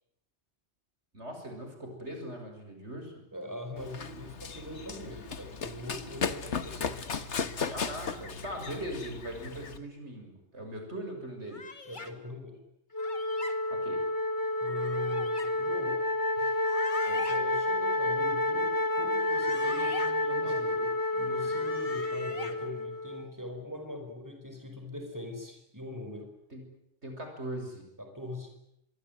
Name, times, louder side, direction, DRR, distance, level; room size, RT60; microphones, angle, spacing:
voice 1, 1.1-3.1 7.7-11.6 13.7-14.0 16.4-16.5 17.1-17.2 20.4-20.5 21.4-21.6 26.5-26.6 27.0-27.9, right 1 dB, 80° right, 4 dB, 7.1 m, -40 dB
voice 2, 3.3-7.0 11.9-12.6 14.6-16.0 17.3-26.3 28.0-28.5, left 1 dB, 15° right, 5 dB, 5.2 m, -42 dB
Run, 3.8-9.8, left 5 dB, 90° left, 1.7 m, -36 dB
sound 1, 11.5-12.1 13.0-13.5 14.6-15.5 16.5-17.4 19.1-20.1 21.2-22.5, left 3 dB, 45° left, 2.4 m, -43 dB
Wind instrument woodwind instrument, 12.9-23.3, left 2 dB, 20° left, 1.4 m, -30 dB
25.0 x 23.0 x 9.5 m, 0.80 s
omnidirectional pair, 1.1 m